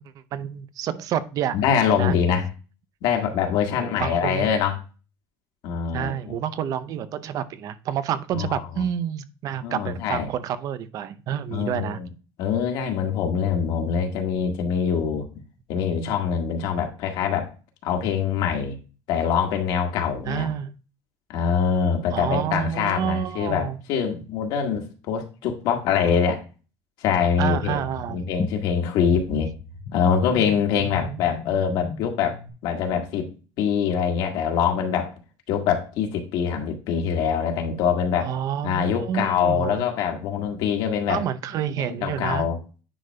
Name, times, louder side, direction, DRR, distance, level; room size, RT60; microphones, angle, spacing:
voice 1, 0.3-1.6 2.0-2.1 3.8-4.5 5.9-12.0 20.3-20.7 22.1-23.8 27.4-28.2 30.7-31.2 38.2-39.9 41.1-42.5, right 9 dB, 45° right, 14 dB, 0.5 m, -29 dB
voice 2, 1.5-2.5 3.0-4.8 5.6-6.3 8.3-8.6 9.6-10.3 11.5-12.1 12.4-15.3 15.7-17.5 17.8-18.8 19.1-20.5 21.3-26.4 27.0-27.8 28.1-29.5 29.9-32.4 32.6-33.3 33.6-35.1 35.5-38.3 38.6-41.2 41.8-42.6, left 7 dB, 65° left, 3 dB, 1.5 m, -24 dB
sound 1, 27.5-32.5, left 4 dB, 25° left, 0.7 m, -37 dB
9.9 x 5.1 x 2.2 m, 0.34 s
cardioid pair, 150°, 8 cm